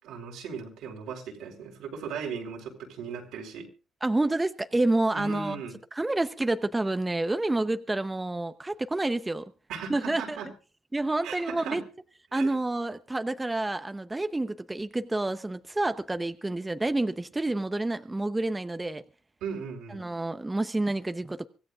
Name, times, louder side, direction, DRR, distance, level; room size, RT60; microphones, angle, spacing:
voice 1, 0.0-3.7 5.1-5.7 9.7-10.5 11.2-11.8 12.3-12.5 19.4-20.0, right 6 dB, 90° right, 4.2 m, -37 dB
voice 2, 4.0-5.6 5.9-9.5 9.9-10.4 10.9-11.8 12.3-19.0 19.9-21.5, right 2 dB, 15° right, 0.8 m, -28 dB
25.0 x 15.5 x 2.5 m
cardioid pair, 90°, 0 cm